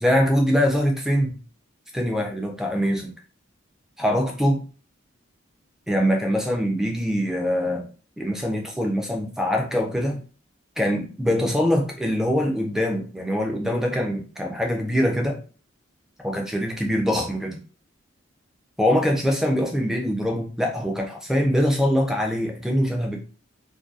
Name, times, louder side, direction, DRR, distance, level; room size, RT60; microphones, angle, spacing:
voice 1, 0.0-1.4 1.9-3.1 4.0-4.6 5.9-7.9 8.2-10.2 10.8-15.4 16.2-17.6 18.8-23.2, equal, ahead, 2 dB, 0.3 m, -23 dB
2.5 x 2.2 x 2.3 m, 0.38 s
head